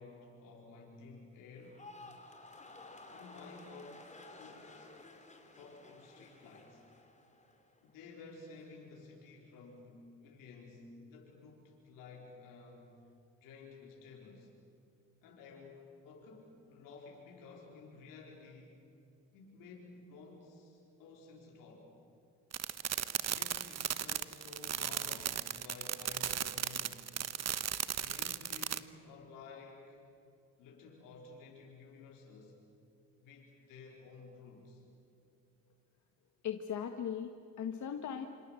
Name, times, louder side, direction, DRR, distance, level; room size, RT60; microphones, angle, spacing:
voice 1, 0.0-1.8 3.1-4.7 5.5-6.9 7.8-12.9 13.4-14.5 15.2-18.8 19.3-21.9 23.2-27.0 27.9-30.0 30.6-32.6 33.2-34.8, left 3 dB, 90° left, -2 dB, 4.6 m, -53 dB
sound 1, 1.6-7.9 8.2-8.7, left 2 dB, 20° left, 4.4 m, -54 dB
sound 2, 22.5-28.8, right 9 dB, 55° right, 1.2 m, -36 dB
voice 2, 36.4-38.3, left 8 dB, 65° left, 6 dB, 1.6 m, -38 dB
27.0 x 26.0 x 7.8 m, 2.6 s
supercardioid pair, 65°, 32 cm